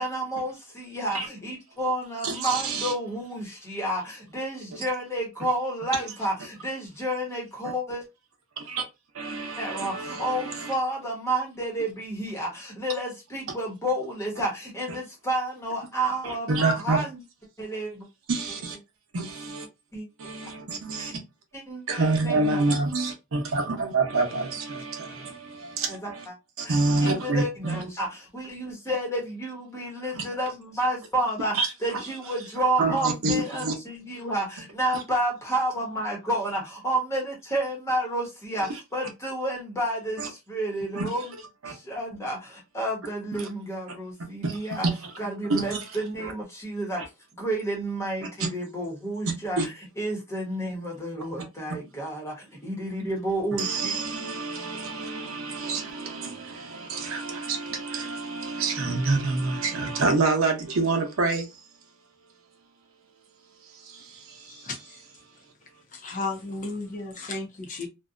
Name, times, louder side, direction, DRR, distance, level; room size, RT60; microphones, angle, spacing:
voice 1, 0.0-8.0 9.6-17.2 17.6-18.1 19.9-20.1 21.0-21.2 21.5-22.7 25.9-26.3 26.6-41.3 41.6-44.9 45.2-47.0 47.4-54.0, right 1 dB, 15° left, 0.9 m, -30 dB
voice 2, 2.2-2.9 8.6-8.8 9.1-10.7 16.2-17.0 18.3-18.8 19.1-19.7 20.2-21.2 21.9-26.2 26.6-27.8 30.1-30.2 31.5-31.7 32.8-33.7 40.2-40.3 40.9-41.0 41.6-41.7 43.4-43.5 44.4-44.6 45.5-45.8 46.2-46.3 49.6-49.7 53.6-61.5 63.9-64.6, right 3 dB, 80° right, 0.7 m, -27 dB
voice 3, 64.5-64.8 65.9-67.9, left 3 dB, 40° left, 0.6 m, -33 dB
2.6 x 2.2 x 2.4 m
head